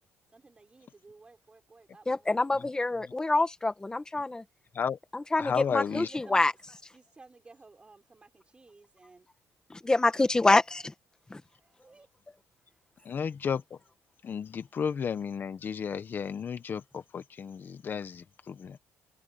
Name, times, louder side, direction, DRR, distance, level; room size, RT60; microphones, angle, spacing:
voice 1, 0.3-2.7 5.8-6.6 6.9-9.3 10.1-10.4 11.5-12.1, right 3 dB, 20° right, 6.4 m, -55 dB
voice 2, 2.1-4.4 5.1-6.5 9.8-10.8 11.3-11.4, left 2 dB, 15° left, 1.6 m, -26 dB
voice 3, 5.4-6.1 13.0-13.8 14.2-18.8, left 7 dB, 35° left, 1.2 m, -33 dB
cardioid pair, 130°, 6 cm